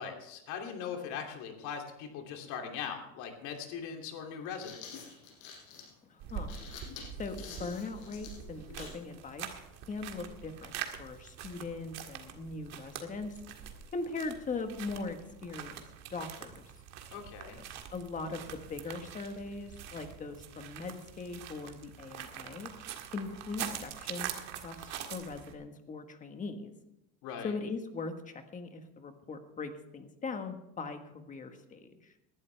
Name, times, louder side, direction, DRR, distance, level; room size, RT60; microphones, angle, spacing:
voice 1, 0.0-5.0 17.1-17.6 27.2-27.6, left 7 dB, 60° left, 3 dB, 2.8 m, -40 dB
sound 1, 3.2-3.3 4.3-9.1, left 5 dB, 85° left, 5.6 m, -48 dB
voice 2, 6.1-6.6 7.2-9.6 9.9-13.3 13.9-15.8 16.1-16.6 17.9-22.7 23.1-26.7 27.4-32.1, left 4 dB, 25° left, 7 dB, 1.5 m, -40 dB
sound 2, 6.2-25.6, right 9 dB, 55° right, 1.8 m, -44 dB
19.5 x 12.0 x 3.4 m, 0.89 s
cardioid pair, 130°, 32 cm